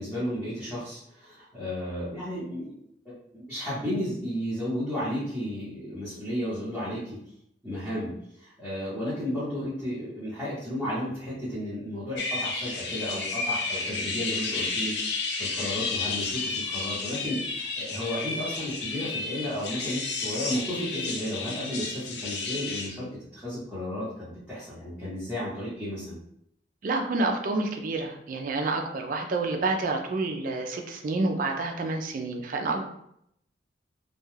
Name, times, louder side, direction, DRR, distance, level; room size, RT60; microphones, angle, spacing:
voice 1, 0.0-2.7 3.3-7.2 7.6-8.1 8.4-14.9 15.4-26.2 29.1-29.2, equal, 5° left, -13 dB, 0.9 m, -33 dB
sound 1, 12.2-22.9, left 4 dB, 60° left, 0.4 m, -32 dB
voice 2, 26.8-32.9, right 3 dB, 45° right, 3 dB, 0.3 m, -28 dB
2.3 x 2.2 x 3.1 m, 0.74 s
head